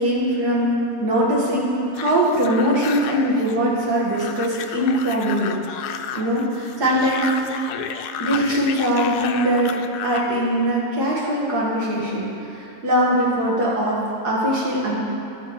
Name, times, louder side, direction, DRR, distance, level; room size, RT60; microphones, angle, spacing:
voice 1, 0.0-7.4 8.2-15.0, equal, 90° right, -5 dB, 2.6 m, -21 dB
sound 1, 2.0-10.3, left 8 dB, 80° left, 1.1 m, -32 dB
12.5 x 5.7 x 7.0 m, 2.8 s
omnidirectional pair, 1.7 m